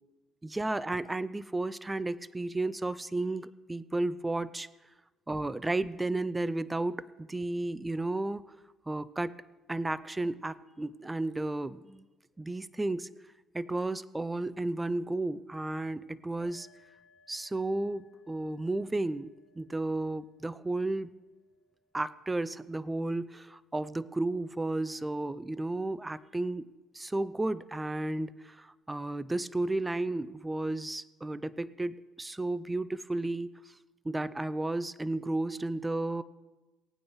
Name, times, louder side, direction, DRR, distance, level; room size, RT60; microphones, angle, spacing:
voice 1, 0.4-4.7 5.3-8.4 8.9-9.4 9.7-12.0 12.4-13.1 13.5-16.7 17.3-19.3 19.6-21.1 21.9-26.7 26.9-33.5 34.0-36.2, right 2 dB, 15° right, 17 dB, 0.5 m, -33 dB
sound 1, 16.4-23.9, equal, 80° right, 3.1 m, -67 dB
18.0 x 9.3 x 3.2 m, 1.2 s
supercardioid pair, 80°, 0 cm